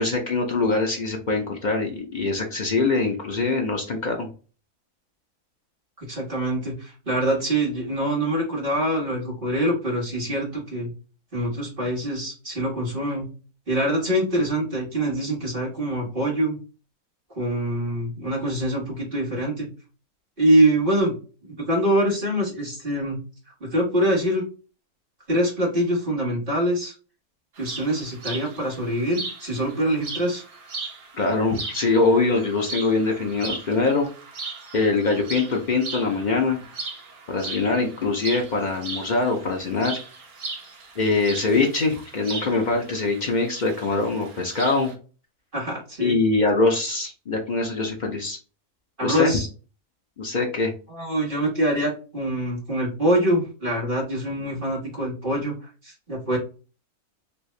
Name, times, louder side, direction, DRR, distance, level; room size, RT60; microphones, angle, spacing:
voice 1, 0.0-4.3 31.2-34.1 34.7-36.6 37.3-40.0 41.0-44.9 46.0-48.4 49.0-49.4 50.2-50.7, left 3 dB, 55° left, 1 dB, 0.5 m, -23 dB
voice 2, 6.0-10.9 11.3-13.3 13.7-16.6 17.4-19.7 20.4-21.2 21.4-23.2 23.6-24.4 25.3-26.9 27.6-30.4 45.5-46.2 49.0-49.5 50.9-55.6 55.8-56.4, right 1 dB, 35° right, -4 dB, 1.7 m, -24 dB
sound 1, 27.6-44.9, right 3 dB, 75° right, 1.4 m, -38 dB
3.2 x 2.7 x 3.1 m, 0.36 s
omnidirectional pair, 1.6 m